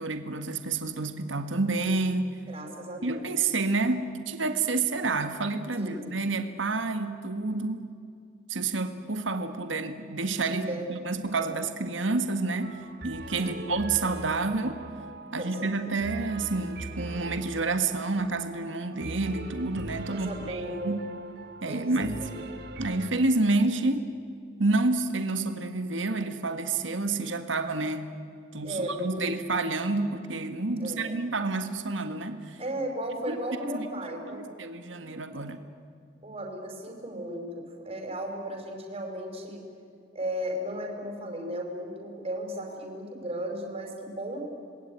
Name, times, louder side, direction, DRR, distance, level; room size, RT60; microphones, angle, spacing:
voice 1, 0.0-2.4 3.0-7.9 8.5-14.8 15.3-21.0 21.6-22.2 22.8-24.1 24.6-28.1 28.5-32.6 33.3-33.4 33.8-33.9 34.3-35.6, right 3 dB, 75° right, 8 dB, 1.8 m, -29 dB
voice 2, 2.5-3.6 5.8-6.1 10.5-10.9 11.4-11.6 13.4-13.8 15.4-16.0 20.1-21.0 21.7-21.8 22.2-22.4 28.6-29.3 30.8-31.2 32.6-34.5 36.2-39.6 40.1-44.5, right 1 dB, 30° right, 1 dB, 5.2 m, -35 dB
sound 1, 12.6-23.1, right 2 dB, 60° right, 2.4 m, -41 dB
27.5 x 21.0 x 9.9 m, 2.3 s
head